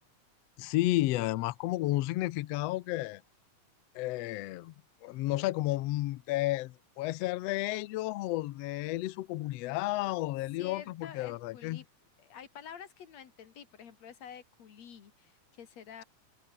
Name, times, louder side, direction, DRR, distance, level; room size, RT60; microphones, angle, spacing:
voice 1, 0.6-3.2 3.9-4.7 5.0-11.8, left 17 dB, 85° left, 1.4 m, -32 dB
voice 2, 10.6-11.9 12.2-16.0, left 8 dB, 55° left, 3.2 m, -49 dB
open air
omnidirectional pair, 3.7 m